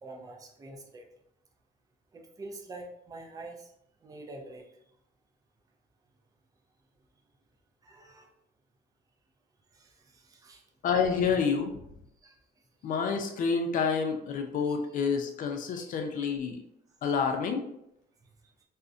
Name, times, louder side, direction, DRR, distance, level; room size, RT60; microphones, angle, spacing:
voice 1, 0.0-1.0 2.1-3.7 4.0-4.7 7.8-8.3 9.7-10.6 11.2-11.3 12.2-12.4 14.7-14.8 15.7-15.8 16.2-16.4, right 2 dB, 20° right, 2 dB, 0.4 m, -46 dB
voice 2, 10.8-11.7 12.8-16.6 17.0-17.6, left 5 dB, 50° left, 4 dB, 0.5 m, -28 dB
2.4 x 2.1 x 2.5 m, 0.77 s
cardioid pair, 110°, 17 cm